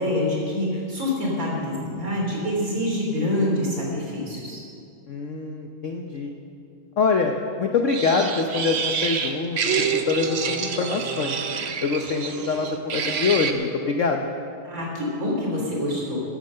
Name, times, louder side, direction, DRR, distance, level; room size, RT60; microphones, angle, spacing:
voice 1, 0.0-4.6 14.6-16.2, left 1 dB, 40° right, -2 dB, 3.6 m, -26 dB
voice 2, 5.1-6.3 7.0-7.3 7.6-11.3 11.8-14.3, left 4 dB, 60° left, 3 dB, 0.7 m, -24 dB
sound 1, 7.9-13.5, right 6 dB, 80° right, 0.5 m, -27 dB
15.5 x 10.0 x 6.5 m, 2.5 s
omnidirectional pair, 2.3 m